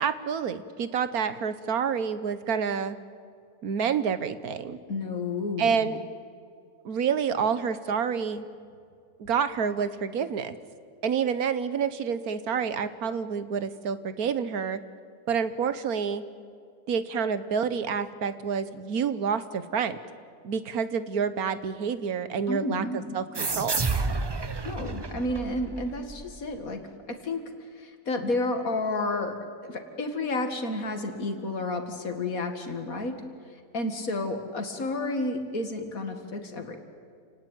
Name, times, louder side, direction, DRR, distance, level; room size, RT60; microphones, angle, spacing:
voice 1, 0.0-3.0 3.6-4.8 5.6-6.0 6.8-8.4 9.2-10.5 11.0-14.8 15.3-16.2 16.9-20.0 20.4-23.8, right 6 dB, 70° right, 13 dB, 1.5 m, -28 dB
voice 2, 4.9-5.9 22.5-23.2 24.6-26.8 27.1-27.4 27.8-29.4 29.6-33.2 33.7-36.8, left 2 dB, 60° left, 6 dB, 2.4 m, -31 dB
sound 1, 23.3-26.6, right 3 dB, 30° right, 0.5 m, -30 dB
28.5 x 18.5 x 9.2 m, 2.2 s
omnidirectional pair, 1.7 m